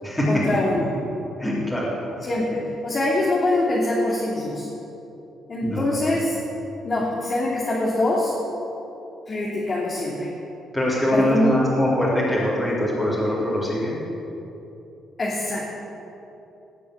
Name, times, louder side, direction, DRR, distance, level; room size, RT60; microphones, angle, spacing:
voice 1, 0.3-0.9 2.2-4.7 5.5-6.4 6.8-8.3 9.3-10.3 11.1-11.5 15.2-15.7, left 2 dB, 35° left, -5 dB, 2.9 m, -24 dB
voice 2, 1.4-1.9 5.6-6.2 10.7-14.0, left 1 dB, 10° left, -8 dB, 4.0 m, -23 dB
19.5 x 6.8 x 8.0 m, 2.9 s
cardioid pair, 90°, 0 cm